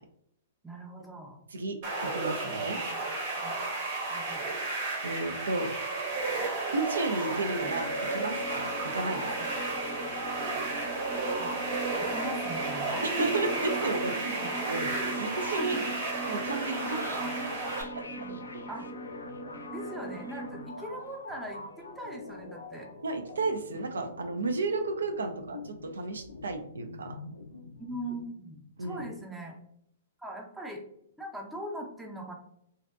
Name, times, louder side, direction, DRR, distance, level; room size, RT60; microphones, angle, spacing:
voice 1, 0.6-1.4 2.4-2.8 3.4-3.5 4.1-4.5 9.2-9.5 11.4-11.5 12.0-14.5 15.6-15.9 16.6-17.5 18.2-18.4 18.7-18.9 19.7-22.9 27.8-29.6 30.2-30.8 31.2-32.3, right 1 dB, 5° right, 0 dB, 0.5 m, -40 dB
sound 1, 1.8-17.8, right 3 dB, 55° right, 0.8 m, -33 dB
voice 2, 2.0-2.8 5.0-5.7 6.7-9.5 13.0-14.1 14.7-14.9 15.2-15.8 16.3-17.1 17.7-18.1 23.0-27.2 28.8-29.0, right 3 dB, 80° right, 6 dB, 0.3 m, -33 dB
sound 2, 7.6-20.6, right 1 dB, 45° left, 0.6 m, -40 dB
sound 3, 14.7-28.3, left 3 dB, 90° left, 0.3 m, -46 dB
2.6 x 2.1 x 2.3 m, 0.72 s
hypercardioid pair, 120°, 0 cm